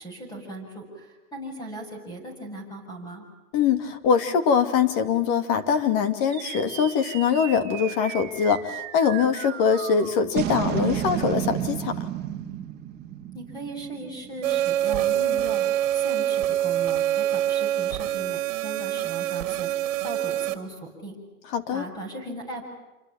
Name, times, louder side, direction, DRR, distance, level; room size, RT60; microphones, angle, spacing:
voice 1, 0.0-3.2 13.3-19.7 20.0-21.2 21.7-22.7, right 2 dB, 10° left, 4 dB, 7.5 m, -38 dB
voice 2, 3.5-12.0 21.5-21.9, left 6 dB, 35° left, 10 dB, 2.6 m, -23 dB
sound 1, 6.3-14.9, right 11 dB, 25° right, 2.8 m, -33 dB
sound 2, 14.4-20.5, right 12 dB, 50° right, 2.7 m, -25 dB
28.0 x 24.0 x 8.8 m, 1.0 s
hypercardioid pair, 150°, 43 cm